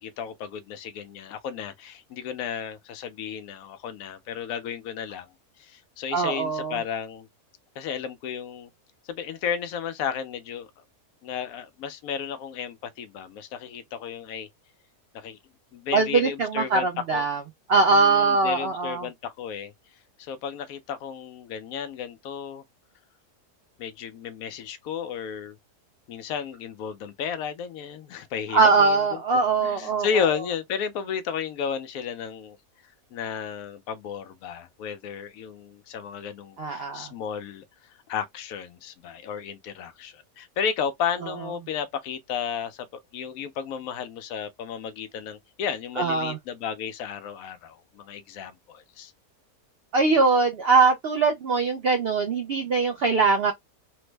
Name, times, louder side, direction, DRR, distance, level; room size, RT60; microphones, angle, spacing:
voice 1, 0.0-5.3 5.6-7.3 7.8-8.7 9.1-10.7 11.2-14.5 15.1-15.4 15.7-17.3 17.9-19.7 20.2-22.6 23.8-25.6 26.1-29.1 29.3-32.6 33.1-37.6 38.1-42.9 43.1-49.1, left 7 dB, 70° left, 1.0 m, -33 dB
voice 2, 6.1-6.8 15.9-17.4 17.7-19.1 28.5-30.1 36.6-37.1 46.0-46.4 49.9-53.5, right 4 dB, 85° right, 0.5 m, -22 dB
3.3 x 2.0 x 3.2 m
omnidirectional pair, 1.7 m